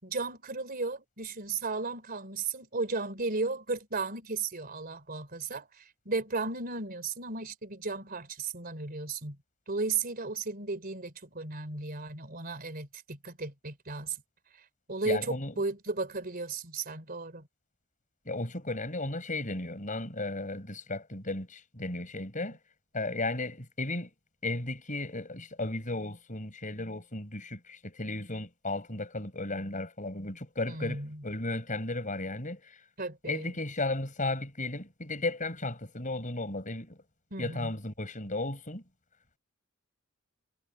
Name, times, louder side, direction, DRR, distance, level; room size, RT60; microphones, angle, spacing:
voice 1, 0.0-9.4 9.7-14.2 14.9-17.4 30.7-31.2 33.0-33.5 37.3-37.7, right 3 dB, 40° right, 3.6 m, -35 dB
voice 2, 15.0-15.5 18.3-22.6 22.9-24.1 24.4-32.8 33.3-37.0 37.4-38.8, left 2 dB, 35° left, 6.1 m, -35 dB
head